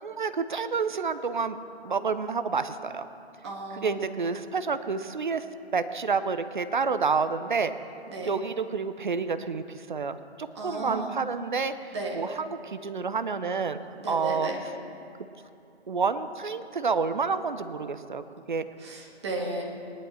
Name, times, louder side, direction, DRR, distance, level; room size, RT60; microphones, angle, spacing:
voice 1, 0.0-1.6 1.8-3.1 3.7-5.4 5.7-7.7 8.3-10.2 10.6-14.5 15.9-18.2 18.5-18.7, right 5 dB, 45° right, 11 dB, 0.7 m, -29 dB
voice 2, 3.4-4.0 8.1-8.3 10.6-11.2 11.9-12.2 14.0-14.6 18.8-19.6, right 2 dB, 25° right, -2 dB, 1.8 m, -34 dB
19.0 x 10.5 x 4.3 m, 2.7 s
hypercardioid pair, 170°, 33 cm